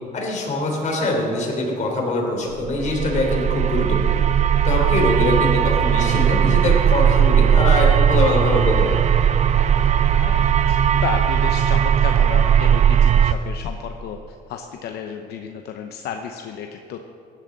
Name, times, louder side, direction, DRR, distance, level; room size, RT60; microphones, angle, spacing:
voice 1, 0.1-4.2 4.6-9.1, left 2 dB, 45° left, 0 dB, 3.4 m, -23 dB
sound 1, 2.7-13.3, right 9 dB, 45° right, 0.5 m, -17 dB
voice 2, 5.2-5.5 10.0-14.2 14.5-17.1, left 7 dB, 70° left, 5 dB, 0.8 m, -32 dB
15.5 x 11.0 x 4.0 m, 2.8 s
cardioid pair, 110°, 17 cm